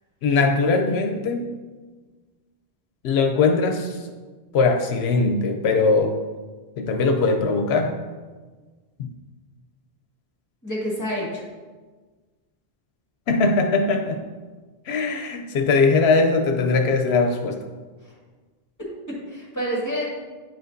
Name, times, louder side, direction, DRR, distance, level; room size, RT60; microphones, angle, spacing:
voice 1, 0.2-1.5 3.0-4.1 4.5-6.2 6.8-8.0 9.0-9.1 13.3-14.2 14.9-17.7, left 3 dB, 85° left, 5 dB, 0.8 m, -20 dB
voice 2, 10.6-11.4 18.8-20.2, equal, 15° left, -5 dB, 1.9 m, -28 dB
8.9 x 5.1 x 2.6 m, 1.4 s
omnidirectional pair, 1.0 m